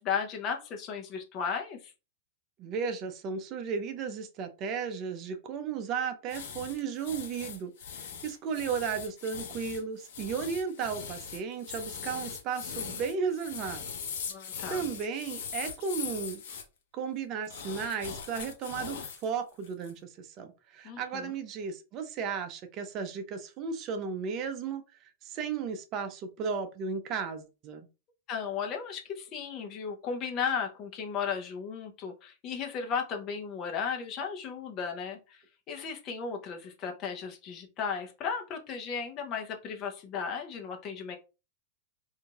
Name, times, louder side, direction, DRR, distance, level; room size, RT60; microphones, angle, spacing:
voice 1, 0.0-1.9 14.3-14.9 20.8-21.3 28.3-41.2, left 6 dB, 40° left, 3 dB, 0.8 m, -35 dB
voice 2, 2.6-13.8 14.7-16.4 16.9-24.8 25.2-27.9, right 6 dB, 40° right, 8 dB, 0.6 m, -34 dB
sound 1, 6.3-16.6 17.4-19.3 19.6-19.9, left 7 dB, 70° left, 1.0 m, -40 dB
3.6 x 2.7 x 2.4 m, 0.30 s
hypercardioid pair, 120°, 0 cm